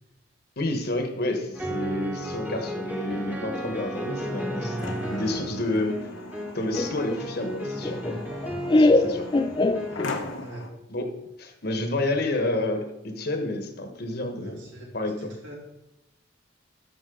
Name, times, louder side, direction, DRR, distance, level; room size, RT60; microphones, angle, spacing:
voice 1, 0.6-4.8 5.1-6.1 6.5-8.0 8.7-9.3 10.9-11.1 11.4-14.6 14.9-15.3, left 2 dB, 55° left, 6 dB, 1.2 m, -29 dB
sound 1, 1.5-10.1, right 1 dB, 10° right, 1.1 m, -34 dB
sound 2, 3.9-10.7, left 3 dB, 80° left, 1.0 m, -40 dB
Laughter, 6.8-10.4, left 2 dB, 25° left, 0.4 m, -23 dB
voice 2, 10.4-10.7 14.4-15.5, right 1 dB, 75° right, -2 dB, 2.9 m, -43 dB
12.5 x 6.0 x 3.8 m, 0.89 s
head